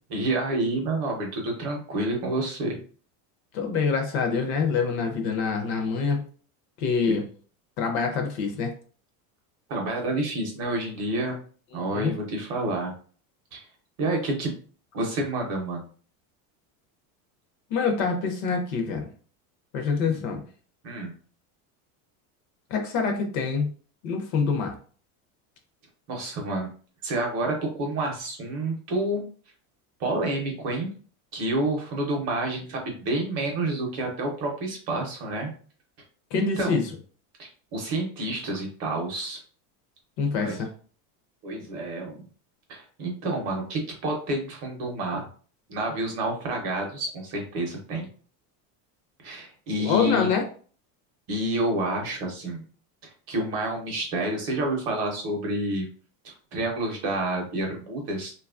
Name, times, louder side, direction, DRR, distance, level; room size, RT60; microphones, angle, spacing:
voice 1, 0.1-2.8 9.7-11.4 11.7-12.9 13.5-13.7 14.0-14.5 14.9-15.9 20.0-20.2 20.8-21.1 26.1-26.7 27.0-29.2 30.0-30.9 31.3-35.5 36.3-36.9 37.4-39.4 40.4-40.6 41.4-42.3 42.7-45.2 45.7-48.1 49.2-50.3 51.3-52.6 53.0-55.9 56.2-58.3, right 1 dB, 35° right, 1 dB, 0.6 m, -29 dB
voice 2, 3.5-6.2 6.8-7.2 7.8-8.7 11.7-12.1 17.7-19.1 19.7-20.4 22.7-23.7 24.0-24.8 36.3-36.8 40.2-40.7 49.7-50.4, left 5 dB, 45° left, 4 dB, 0.5 m, -25 dB
2.8 x 2.3 x 2.3 m, 0.42 s
cardioid pair, 170°, 45 cm